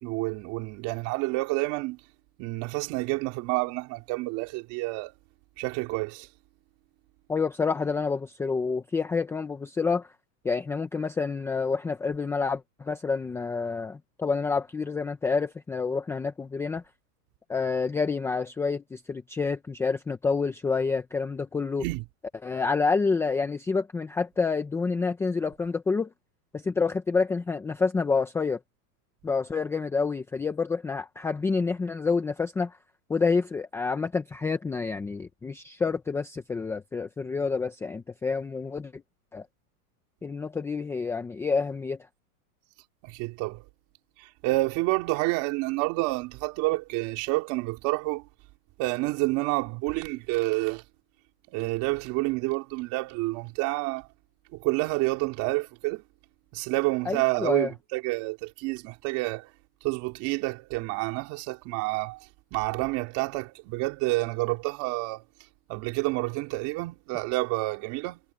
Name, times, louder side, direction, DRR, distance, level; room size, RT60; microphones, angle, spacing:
voice 1, 0.0-2.0 2.4-5.1 5.6-6.3 21.8-22.0 43.0-43.6 44.2-48.3 48.8-50.8 51.5-54.1 54.5-56.0 56.5-59.5 59.8-62.2 62.5-65.3 65.7-68.2, right 22 dB, 40° right, 4.1 m, -29 dB
voice 2, 7.3-10.1 10.4-16.8 17.5-21.8 22.4-26.1 26.5-28.6 29.2-32.8 33.1-39.0 39.3-39.5 40.2-42.0 57.1-57.7, left 4 dB, 5° left, 0.7 m, -28 dB
supercardioid pair, 165°, 47 cm